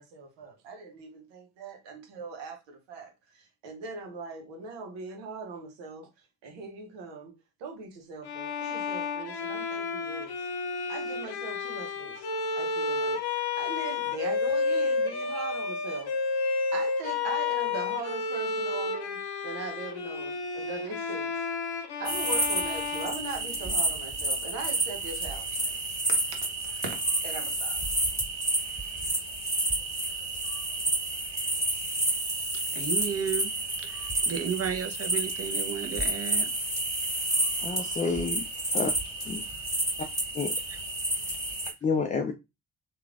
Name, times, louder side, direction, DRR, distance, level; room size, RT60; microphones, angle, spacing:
voice 1, 0.0-6.1 6.4-10.5 10.9-12.2 12.5-16.1 16.7-19.2 19.4-21.3 22.0-25.8 26.1-26.5 26.8-27.8, right 4 dB, 80° right, 0.8 m, -40 dB
Bowed string instrument, 8.2-24.0, left 4 dB, 60° left, 0.8 m, -31 dB
sound 1, 22.0-41.7, right 1 dB, 10° right, 1.8 m, -30 dB
voice 2, 32.7-33.5 33.8-36.5, right 7 dB, 35° right, 0.6 m, -33 dB
voice 3, 37.6-38.4 38.7-38.9 39.3-39.4 40.3-40.5 41.8-42.3, left 4 dB, 20° left, 0.3 m, -29 dB
3.1 x 2.2 x 2.4 m
hypercardioid pair, 40°, 44 cm